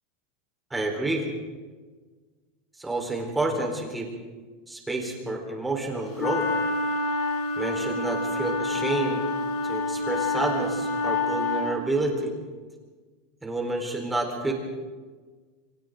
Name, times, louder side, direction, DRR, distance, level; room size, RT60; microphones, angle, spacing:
voice 1, 0.7-1.3 2.8-4.1 4.7-6.5 7.6-9.2 9.6-12.3 13.4-14.5, right 2 dB, 10° right, 0 dB, 4.4 m, -29 dB
sound 1, 6.2-11.7, left 3 dB, 55° left, 6.1 m, -27 dB
29.5 x 26.0 x 4.0 m, 1.4 s
supercardioid pair, 155°, 0 cm